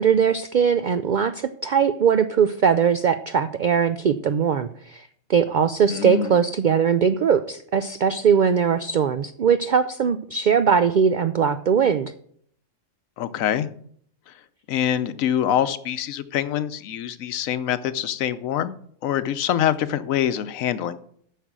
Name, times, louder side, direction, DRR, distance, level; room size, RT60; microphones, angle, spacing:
voice 1, 0.0-12.1, right 7 dB, 75° right, 11 dB, 0.4 m, -20 dB
voice 2, 5.9-6.4 13.2-13.7 14.7-18.8 19.0-21.0, left 10 dB, 85° left, 13 dB, 1.1 m, -25 dB
9.2 x 6.4 x 6.1 m, 0.63 s
omnidirectional pair, 1.4 m